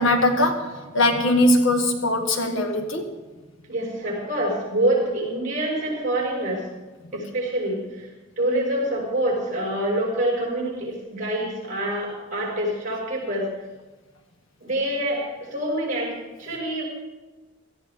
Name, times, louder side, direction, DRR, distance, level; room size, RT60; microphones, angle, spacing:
voice 1, 0.0-3.2, left 1 dB, 80° left, 3 dB, 1.8 m, -21 dB
voice 2, 3.7-6.7 7.1-8.1 8.4-13.5 14.6-16.1 16.4-16.8, right 1 dB, 40° right, -3 dB, 6.1 m, -26 dB
18.0 x 14.5 x 3.7 m, 1.2 s
head